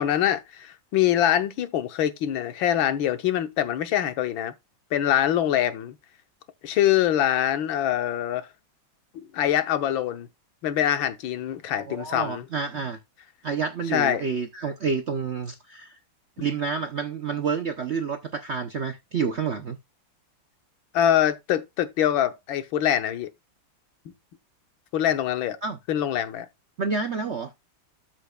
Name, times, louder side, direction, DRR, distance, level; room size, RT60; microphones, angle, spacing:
voice 1, 0.0-4.5 4.9-5.9 6.6-8.5 9.1-10.3 10.6-12.5 13.9-14.2 16.4-16.5 20.9-23.3 24.9-25.6 25.9-26.5, left 11 dB, 85° left, 1.7 m, -24 dB
voice 2, 11.8-13.0 13.4-16.0 16.4-19.8 25.6-25.8 26.8-27.5, right 5 dB, 60° right, 0.7 m, -29 dB
13.0 x 5.7 x 2.3 m
omnidirectional pair, 2.1 m